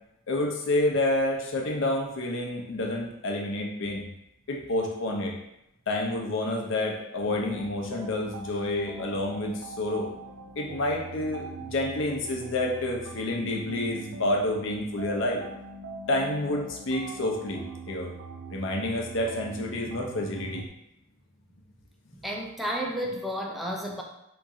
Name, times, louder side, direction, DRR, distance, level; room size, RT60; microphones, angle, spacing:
voice 1, 0.3-4.1 4.5-5.3 5.9-10.1 10.6-15.4 16.1-18.1 18.5-20.6, left 1 dB, 65° left, 1 dB, 0.6 m, -29 dB
sound 1, 7.2-20.7, right 3 dB, 75° right, 0.3 m, -42 dB
voice 2, 22.2-24.0, equal, ahead, -1 dB, 0.4 m, -31 dB
3.0 x 2.5 x 3.6 m, 0.84 s
head